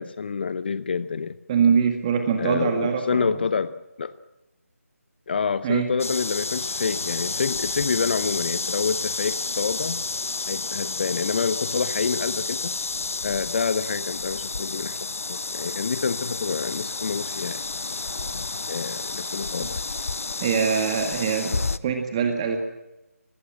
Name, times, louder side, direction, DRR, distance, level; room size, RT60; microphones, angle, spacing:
voice 1, 0.0-1.4 2.4-4.1 5.3-10.0 10.5-12.7 13.2-17.6 18.7-19.8, left 5 dB, 40° left, 14 dB, 0.8 m, -27 dB
voice 2, 1.5-3.3 5.6-5.9 19.6-19.7 20.4-22.6, right 6 dB, 25° right, 5 dB, 1.9 m, -23 dB
sound 1, 6.0-21.8, left 3 dB, 60° left, 1.0 m, -30 dB
24.5 x 20.0 x 7.7 m, 1.0 s
figure-of-eight pair, 155°, 8 cm